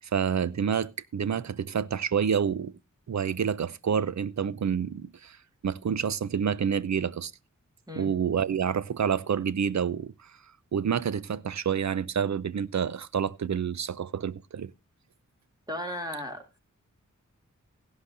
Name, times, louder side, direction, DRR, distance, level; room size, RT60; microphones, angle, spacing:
voice 1, 0.1-2.7 3.1-5.4 5.6-7.3 8.0-10.1 10.7-14.7, right 7 dB, 60° right, 0.6 m, -28 dB
voice 2, 15.7-16.6, left 1 dB, 15° right, 2.6 m, -36 dB
16.0 x 11.5 x 2.6 m
wide cardioid pair, 55°, 31 cm